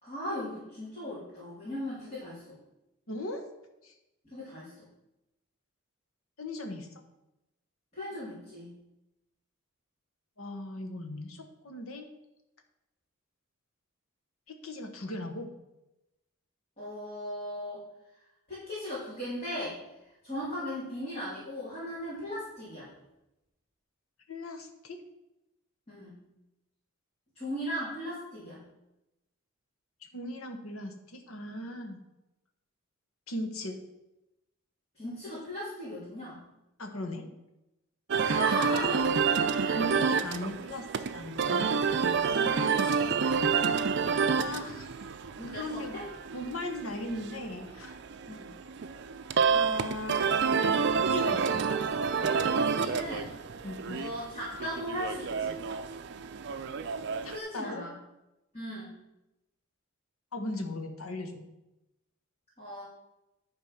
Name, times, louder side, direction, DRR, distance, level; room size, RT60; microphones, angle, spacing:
voice 1, 0.0-2.6 4.3-4.7 7.9-8.8 16.8-17.8 18.5-19.8 20.2-22.9 25.9-26.2 27.4-28.6 35.0-36.4 38.1-39.1 39.5-39.8 42.7-43.1 45.4-46.1 48.3-48.5 52.6-53.3 53.9-55.6 57.3-57.9 58.5-58.9 62.6-62.8, equal, 30° left, -10 dB, 3.5 m, -37 dB
voice 2, 3.1-3.4 3.8-3.9 6.4-6.9 10.4-12.1 14.5-15.5 24.3-25.0 30.1-32.0 33.3-33.8 36.8-37.3 39.7-41.7 42.3-42.9 44.4-45.0 45.5-46.0 46.3-48.0 49.5-50.3 50.6-51.6 53.6-54.0 57.2-57.9 60.3-61.4, left 1 dB, 85° left, 5 dB, 1.3 m, -38 dB
sound 1, 38.1-57.4, right 5 dB, 55° right, 0.5 m, -29 dB
11.0 x 4.5 x 5.8 m, 0.93 s
head